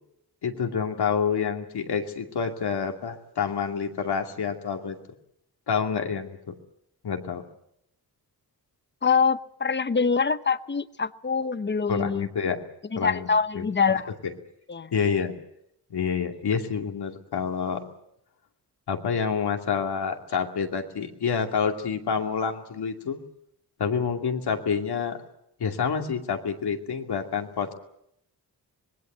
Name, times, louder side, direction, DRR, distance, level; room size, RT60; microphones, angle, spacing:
voice 1, 0.4-5.0 5.7-6.5 7.0-7.4 11.9-12.6 12.9-13.3 13.5-14.0 14.9-15.3 15.9-17.9 18.9-23.2 23.8-25.2 25.6-27.7, left 6 dB, 75° left, 3 dB, 2.6 m, -28 dB
voice 2, 9.0-12.3 12.9-14.1 14.7-14.9, left 5 dB, 25° left, 13 dB, 0.9 m, -24 dB
25.5 x 20.5 x 8.1 m, 0.78 s
wide cardioid pair, 115°, 40 cm